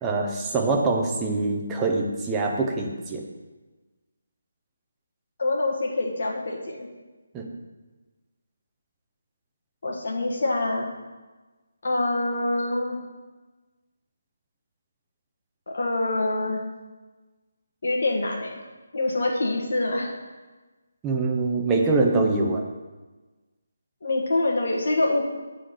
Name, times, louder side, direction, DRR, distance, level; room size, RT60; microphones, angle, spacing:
voice 1, 0.0-3.3 7.3-7.5 21.0-22.6, right 3 dB, 10° right, 0 dB, 0.5 m, -24 dB
voice 2, 5.4-6.9 9.8-10.9 11.8-13.0 15.7-16.6 17.8-18.6 18.9-20.1 24.0-25.3, left 2 dB, 50° left, -1 dB, 1.4 m, -25 dB
7.3 x 3.8 x 6.4 m, 1.2 s
hypercardioid pair, 175°, 0 cm